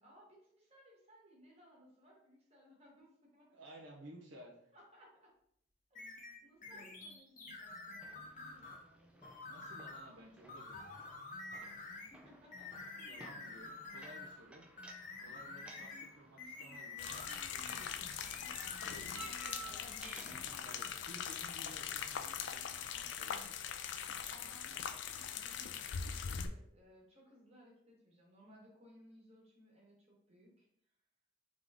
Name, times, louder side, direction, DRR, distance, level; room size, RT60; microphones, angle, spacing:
voice 1, 0.0-3.5 4.7-5.3 5.9-6.1 6.4-9.3 11.9-12.7 18.5-20.7 24.3-30.7, equal, 30° right, -3 dB, 1.4 m, -62 dB
voice 2, 3.5-4.7 6.7-6.9 9.4-11.0 13.1-14.7 15.2-19.0 20.6-23.5, right 1 dB, 70° right, -1 dB, 0.7 m, -56 dB
sound 1, 5.9-8.8 9.2-10.1 10.5-12.1 12.5-14.4 14.8-17.9 18.2-19.6 19.9-20.0, left 3 dB, 40° left, 0.8 m, -49 dB
sound 2, 8.0-23.0, right 3 dB, 5° right, 0.4 m, -58 dB
sound 3, 17.0-26.5, left 7 dB, 65° left, 0.3 m, -42 dB
3.7 x 3.6 x 3.5 m, 0.69 s
head